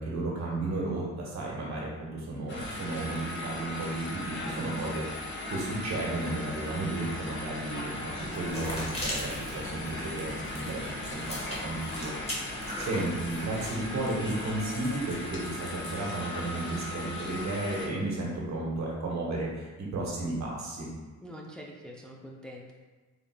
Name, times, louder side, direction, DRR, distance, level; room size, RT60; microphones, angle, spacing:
voice 1, 0.0-12.1 12.5-20.9, right 2 dB, 65° right, -3 dB, 1.3 m, -33 dB
sound 1, 2.5-17.9, left 1 dB, 40° left, 0.9 m, -38 dB
sound 2, 8.2-13.8, left 1 dB, 20° left, 1.4 m, -39 dB
sound 3, 9.8-16.0, left 3 dB, 80° left, 1.1 m, -52 dB
voice 2, 12.5-12.9 21.2-22.7, equal, 5° left, -1 dB, 0.5 m, -45 dB
4.1 x 3.8 x 2.2 m, 1.3 s
cardioid pair, 90°, 30 cm